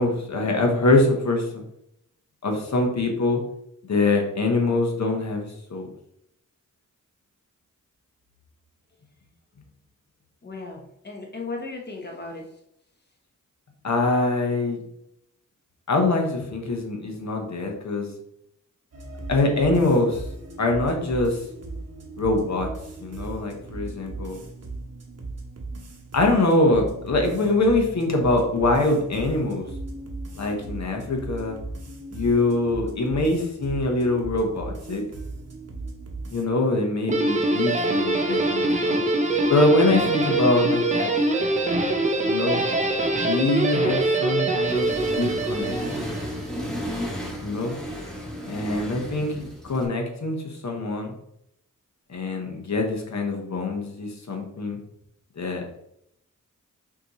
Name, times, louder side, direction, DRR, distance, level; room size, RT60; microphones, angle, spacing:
voice 1, 0.0-1.6 2.4-3.4 3.9-5.9 13.8-14.8 15.9-18.1 19.3-20.2 20.6-21.4 22.2-22.7 23.0-24.4 26.1-29.7 30.4-31.6 32.1-35.0 36.3-39.0 39.5-41.1 42.2-42.6 43.2-44.9 45.1-45.8 47.4-47.7 48.4-50.4 50.6-51.1 52.1-54.8 55.4-55.6, left 2 dB, 60° left, 2 dB, 1.1 m, -23 dB
voice 2, 10.4-12.5 49.2-49.5, left 3 dB, 30° left, 1 dB, 1.1 m, -36 dB
sound 1, 18.9-36.4, right 2 dB, 50° right, 1.0 m, -37 dB
Guitar, 37.1-46.4, right 2 dB, 25° right, 0.7 m, -23 dB
Accelerating revving vroom, 44.6-49.9, equal, ahead, 1.1 m, -33 dB
5.9 x 2.9 x 3.1 m, 0.77 s
wide cardioid pair, 100°, 32 cm